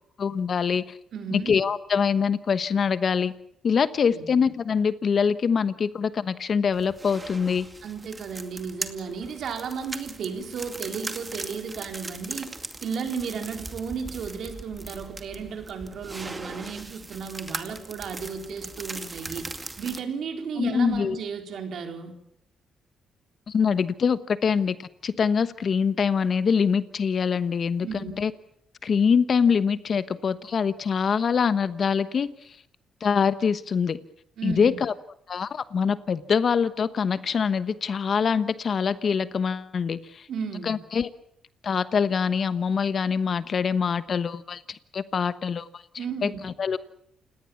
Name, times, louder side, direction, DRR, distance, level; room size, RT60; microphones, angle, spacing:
voice 1, 0.2-0.9 1.3-3.3 3.6-7.7 20.6-21.2 23.5-27.9 28.2-28.3 28.8-32.3 33.0-34.0 34.4-34.9 35.3-40.3 40.6-41.1 41.6-45.8 46.2-46.8, left 6 dB, 50° left, 14 dB, 1.1 m, -24 dB
voice 2, 1.1-1.5 4.1-4.3 7.8-12.5 12.8-19.5 19.8-22.1 27.8-28.2 34.4-34.8 40.3-40.7 46.0-46.5, right 6 dB, 65° right, 5 dB, 4.2 m, -34 dB
sound 1, 6.7-20.0, right 2 dB, 20° right, 2.2 m, -39 dB
29.0 x 18.0 x 7.2 m, 0.70 s
cardioid pair, 90°, 0 cm